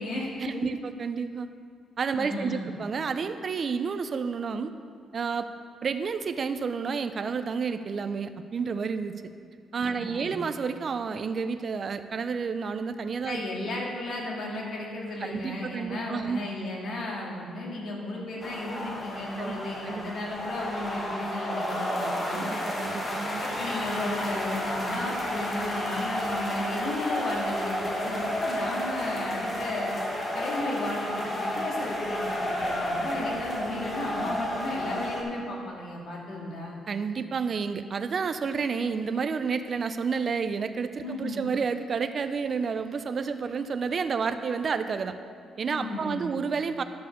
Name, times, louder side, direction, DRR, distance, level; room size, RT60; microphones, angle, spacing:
voice 1, 0.4-1.5 2.0-4.7 5.1-5.5 5.8-9.1 9.7-13.4 15.2-16.4 19.4-19.5 19.8-20.1 22.3-23.4 36.9-45.2 45.6-46.8, right 5 dB, 50° right, 10 dB, 0.6 m, -30 dB
voice 2, 2.1-2.7 9.8-10.3 13.2-22.5 23.4-29.9 30.3-36.8 41.0-41.4 45.7-46.3, left 1 dB, 65° left, -2 dB, 2.5 m, -34 dB
sound 1, 18.4-35.2, left 1 dB, 35° left, 2.1 m, -31 dB
11.0 x 5.5 x 7.0 m, 2.2 s
cardioid pair, 85°, 0 cm